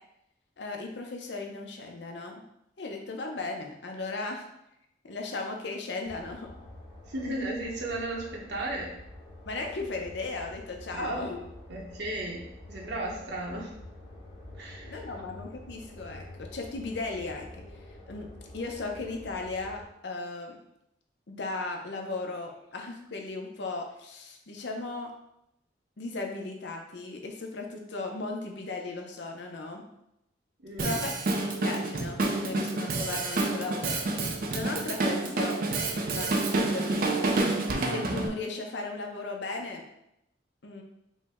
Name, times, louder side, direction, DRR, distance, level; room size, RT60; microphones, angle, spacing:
voice 1, 0.6-2.4 2.8-4.5 5.0-6.5 9.5-11.4 14.9-17.5 18.1-18.3 18.5-20.6 21.3-25.1 26.0-29.8 30.8-31.2 31.4-34.0 34.5-35.6 36.1-37.1 37.7-39.8 40.6-40.8, left 3 dB, 70° left, 2 dB, 0.6 m, -36 dB
sound 1, 6.0-19.8, left 1 dB, 35° left, 1.3 m, -47 dB
voice 2, 7.1-8.9 10.9-13.7 14.6-15.2 30.6-31.1, right 1 dB, 65° right, -2 dB, 0.9 m, -35 dB
Drum kit, 30.8-38.3, right 2 dB, 50° right, 0.4 m, -28 dB
5.2 x 2.1 x 3.5 m, 0.82 s
head